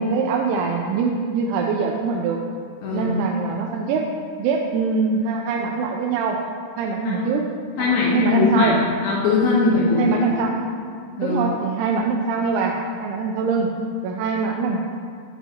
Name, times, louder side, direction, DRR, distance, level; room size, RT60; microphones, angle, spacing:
voice 1, 0.0-2.4 2.9-4.1 4.4-6.4 6.8-7.4 7.8-8.7 10.0-10.5 11.2-12.7 13.0-13.7 14.0-14.8, right 5 dB, 85° right, 0 dB, 2.9 m, -23 dB
voice 2, 2.8-3.6 7.0-7.2 7.8-10.2 11.2-11.5, left 4 dB, 80° left, -5 dB, 2.0 m, -21 dB
11.0 x 7.0 x 2.8 m, 2.2 s
omnidirectional pair, 5.4 m